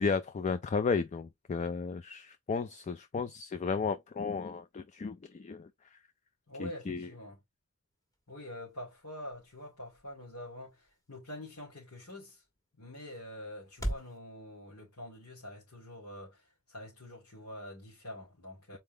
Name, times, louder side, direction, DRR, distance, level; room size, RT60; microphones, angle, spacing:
voice 1, 0.0-5.7 6.6-7.1, left 5 dB, 30° left, 0.3 m, -33 dB
voice 2, 6.5-7.4 8.3-12.4 12.8-18.8, left 1 dB, 90° left, 2.6 m, -46 dB
sound 1, 7.9-14.2, right 1 dB, 15° left, 1.5 m, -45 dB
4.4 x 3.6 x 3.2 m
head